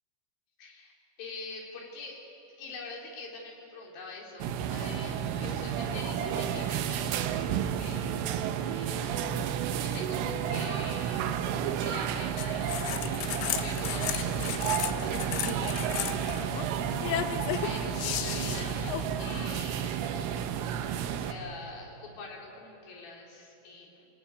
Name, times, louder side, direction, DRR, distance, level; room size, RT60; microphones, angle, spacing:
voice 1, 0.6-2.2 2.6-5.1 5.4-8.3 8.7-9.3 9.8-13.3 13.6-16.7 17.0-20.6 21.1-24.1, left 3 dB, 50° left, -1 dB, 5.1 m, -45 dB
sound 1, 4.4-21.3, right 9 dB, 90° right, 3.7 m, -32 dB
sound 2, 5.7-11.8, right 8 dB, 70° right, 3.2 m, -40 dB
sound 3, 12.4-19.6, left 11 dB, 80° left, 3.6 m, -35 dB
28.0 x 19.0 x 9.8 m, 2.8 s
omnidirectional pair, 5.7 m